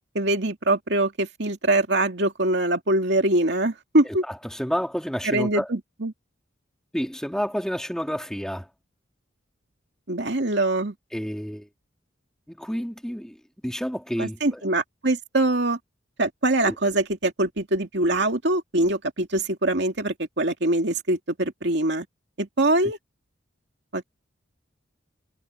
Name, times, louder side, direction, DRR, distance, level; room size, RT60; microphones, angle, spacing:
voice 1, 0.1-4.2 5.2-6.1 10.1-10.9 14.2-15.8 16.2-22.1 22.4-23.0 23.9-24.0, right 2 dB, 65° right, 2.5 m, -23 dB
voice 2, 4.0-5.7 6.9-8.7 11.1-11.7 12.5-13.4 13.6-14.6 16.7-16.8 22.8-22.9, equal, 5° left, 3.0 m, -30 dB
head